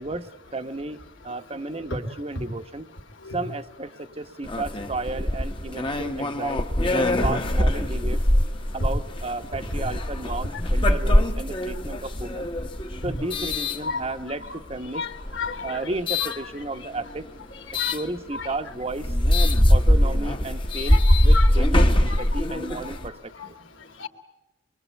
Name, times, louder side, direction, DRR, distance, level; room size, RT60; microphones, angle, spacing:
voice 1, 0.0-2.9 3.3-6.6 6.9-8.3 8.7-12.5 13.0-15.1 15.6-17.3 17.7-19.1 19.7-23.6, right 2 dB, 30° right, 9 dB, 1.1 m, -33 dB
sound 1, 4.4-14.5 15.1-16.4 17.7-18.0 18.5-18.6 18.9-23.1, left 1 dB, 25° left, 1.2 m, -22 dB
voice 2, 14.9-15.9 16.2-16.4 17.8-18.0 18.3-18.5 20.9-21.0 21.3-21.5 22.1-22.2 23.4-23.5 24.0-24.1, left 4 dB, 75° left, 4 dB, 2.7 m, -32 dB
26.0 x 23.0 x 8.2 m, 0.92 s
head